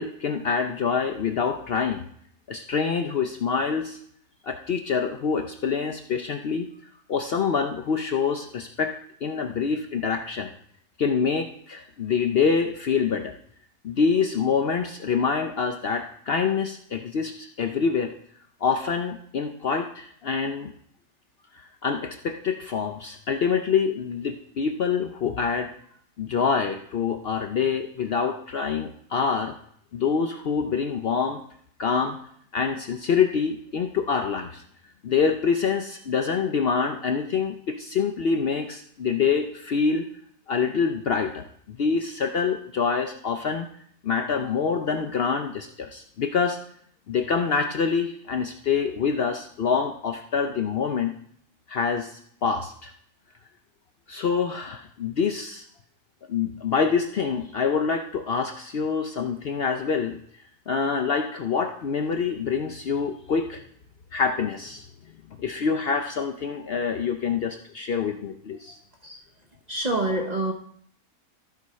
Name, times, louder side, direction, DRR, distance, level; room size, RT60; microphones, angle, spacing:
voice 1, 0.0-2.0 2.5-4.0 4.4-6.7 7.1-8.9 9.2-10.5 11.0-13.3 13.8-18.1 18.6-20.7 21.8-25.7 26.2-29.5 29.9-31.4 31.8-32.2 32.5-34.6 35.0-40.1 40.5-43.7 44.0-46.6 47.1-51.1 51.7-52.9 54.1-55.7 56.3-60.2 60.7-63.6 64.1-64.8 65.4-68.8, left 6 dB, 60° left, 0.7 m, -26 dB
voice 2, 69.7-70.5, right 2 dB, 40° right, 0.6 m, -26 dB
14.0 x 5.0 x 4.2 m
omnidirectional pair, 1.5 m